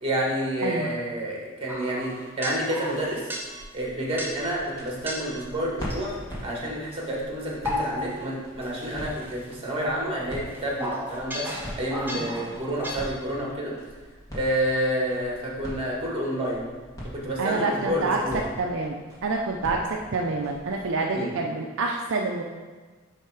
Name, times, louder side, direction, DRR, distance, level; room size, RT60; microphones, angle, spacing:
voice 1, 0.0-3.3 3.7-6.1 6.4-11.5 11.7-13.7 14.3-16.7 17.1-18.5 21.1-21.3, equal, 25° right, -3 dB, 1.7 m, -29 dB
voice 2, 0.6-1.0 12.2-12.3 17.4-18.2 18.6-19.0 19.2-22.4, right 3 dB, 65° right, 1 dB, 0.6 m, -27 dB
sound 1, 1.7-3.7 4.2-4.5 5.0-5.4 5.9-6.7 7.4-8.4 8.6-13.0, equal, 10° right, 0.9 m, -35 dB
sound 2, 3.4-20.9, equal, 15° left, 2.1 m, -43 dB
10.0 x 3.4 x 4.8 m, 1.3 s
head